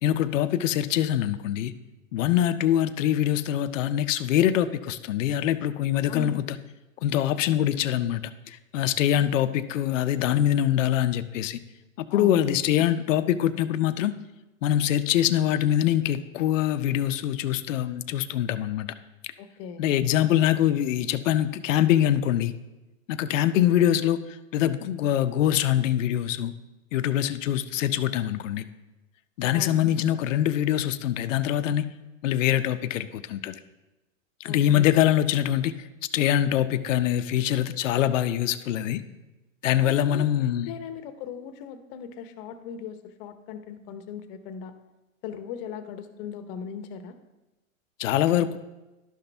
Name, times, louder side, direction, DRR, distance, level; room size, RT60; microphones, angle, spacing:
voice 1, 0.0-1.7 2.1-6.6 7.0-11.6 12.0-14.1 14.6-18.9 19.8-22.5 23.1-26.5 26.9-28.6 29.4-31.9 32.2-33.6 34.4-35.9 36.1-39.0 39.6-40.7 48.0-48.6, left 11 dB, 70° left, 11 dB, 0.6 m, -24 dB
voice 2, 12.1-12.8 19.4-19.8 29.5-29.8 34.5-35.0 39.8-40.3 40.6-44.7 45.2-47.2, left 6 dB, 45° left, 10 dB, 0.9 m, -38 dB
11.5 x 5.8 x 3.3 m, 1.1 s
hypercardioid pair, 120°, 40 cm